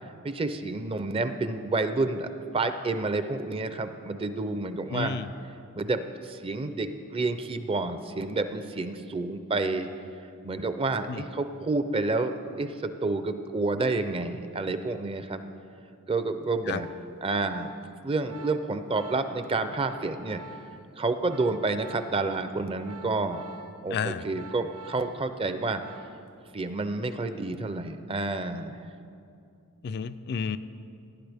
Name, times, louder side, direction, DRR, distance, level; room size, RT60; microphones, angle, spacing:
voice 1, 0.2-2.3 2.5-5.2 5.7-9.9 10.4-15.4 16.1-16.9 17.2-17.7 18.0-20.4 21.0-23.4 23.8-25.8 26.5-28.8, right 3 dB, 25° right, 9 dB, 0.5 m, -29 dB
voice 2, 4.9-5.3 11.1-11.2 16.7-16.8 23.9-24.2 29.8-30.6, left 6 dB, 45° left, 11 dB, 0.3 m, -31 dB
Organ, 16.4-26.4 26.7-27.0, right 2 dB, 75° right, 0.6 m, -48 dB
17.5 x 10.5 x 3.5 m, 2.5 s
head